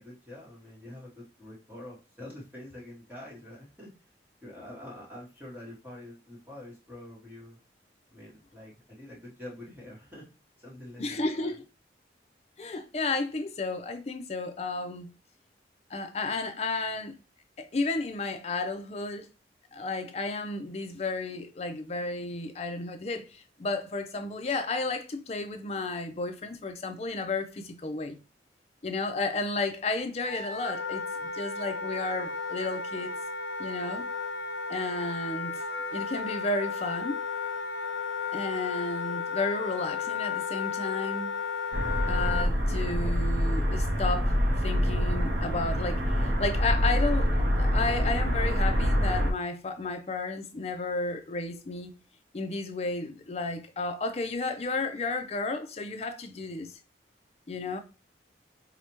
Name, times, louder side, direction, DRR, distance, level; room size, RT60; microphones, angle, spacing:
voice 1, 0.0-3.9 4.4-7.6 8.1-10.3 10.6-11.6, left 1 dB, 10° right, 1.0 m, -46 dB
voice 2, 11.0-11.6 12.6-15.1 15.9-17.2 17.6-19.3 19.7-28.2 28.8-31.0 31.3-33.2 33.6-34.1 34.7-35.6 35.9-37.2 38.3-41.4 42.1-44.4 44.6-51.9 52.3-56.7 57.5-57.8, left 3 dB, 35° left, 0.4 m, -32 dB
Wind instrument woodwind instrument, 30.3-42.5, left 5 dB, 75° left, 0.7 m, -34 dB
sound 1, 41.7-49.3, equal, 60° right, 0.6 m, -26 dB
4.7 x 2.1 x 2.9 m
head